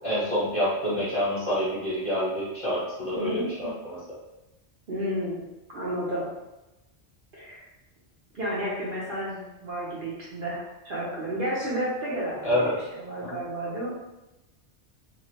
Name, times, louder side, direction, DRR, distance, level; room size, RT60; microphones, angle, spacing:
voice 1, 0.0-4.0 12.4-12.7 13.2-13.4, equal, 30° left, -10 dB, 1.2 m, -27 dB
voice 2, 3.1-3.5 4.9-5.4 5.7-6.3 7.4-7.6 8.3-13.9, equal, 50° right, -7 dB, 0.9 m, -31 dB
3.0 x 2.5 x 2.8 m, 0.99 s
omnidirectional pair, 1.2 m